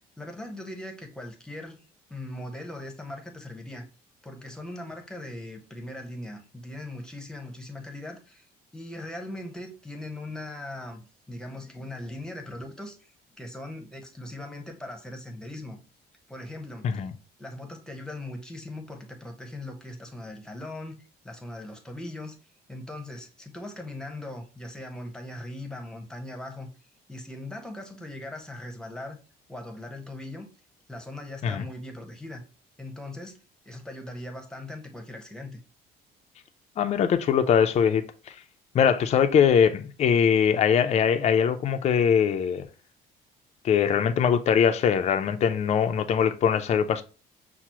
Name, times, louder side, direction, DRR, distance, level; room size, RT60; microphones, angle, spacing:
voice 1, 0.2-1.8 2.1-3.9 4.2-11.0 11.3-15.8 16.3-17.0 17.4-22.4 22.7-26.7 27.1-29.2 29.5-30.5 30.9-32.4 32.8-33.4 33.7-35.6, left 1 dB, 5° left, 0.8 m, -39 dB
voice 2, 36.8-38.4 38.7-42.7 43.6-47.0, left 7 dB, 40° left, 0.4 m, -22 dB
5.8 x 2.0 x 2.8 m
cardioid pair, 110°, 17 cm